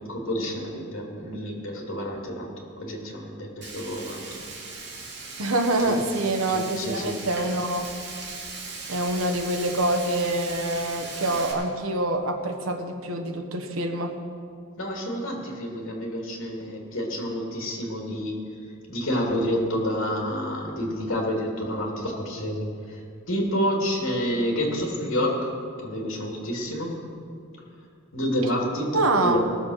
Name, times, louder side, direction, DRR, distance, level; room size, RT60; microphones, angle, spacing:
voice 1, 0.1-2.5 2.8-4.3 5.9-6.0 6.5-7.2 14.8-18.4 18.9-23.0 23.3-25.5 25.8-26.9 28.1-29.4, equal, 70° left, -1 dB, 2.8 m, -28 dB
Frying (food), 3.6-11.5, right 3 dB, 55° right, 2.6 m, -38 dB
voice 2, 5.4-7.9 8.9-14.1 28.9-29.4, right 2 dB, 80° right, 5 dB, 1.3 m, -26 dB
18.5 x 7.2 x 6.4 m, 2.3 s
head